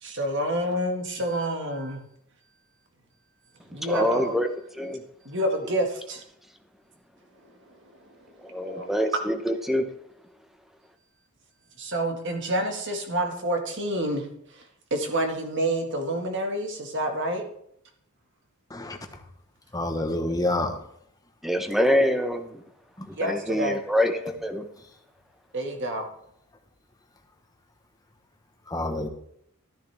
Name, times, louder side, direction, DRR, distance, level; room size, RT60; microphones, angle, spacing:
voice 1, 0.0-2.0 3.7-4.4 5.3-6.2 8.6-8.9 11.8-14.3 14.5-14.6 14.9-17.4 23.1-23.8 25.5-26.0, right 1 dB, 55° right, 3 dB, 1.8 m, -28 dB
voice 2, 3.8-4.5 4.7-5.0 8.4-9.9 21.4-22.6 23.1-24.7, equal, ahead, 7 dB, 0.8 m, -25 dB
voice 3, 19.7-20.8 23.0-23.1 28.7-29.1, left 1 dB, 15° left, 5 dB, 1.1 m, -28 dB
13.0 x 10.0 x 3.5 m, 0.72 s
head